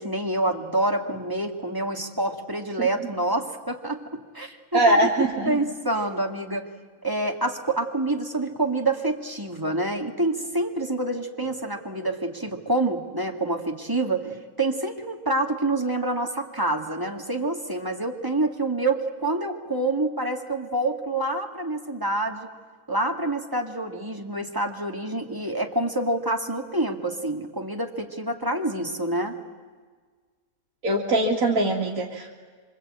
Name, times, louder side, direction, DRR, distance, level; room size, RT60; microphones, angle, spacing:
voice 1, 0.0-5.0 5.5-6.7 7.0-22.5 22.9-29.4, right 2 dB, 15° right, 3 dB, 2.0 m, -27 dB
voice 2, 2.8-3.1 4.7-5.6 30.8-32.4, right 2 dB, 75° right, -4 dB, 2.7 m, -22 dB
26.5 x 25.5 x 8.8 m, 1.5 s
omnidirectional pair, 1.5 m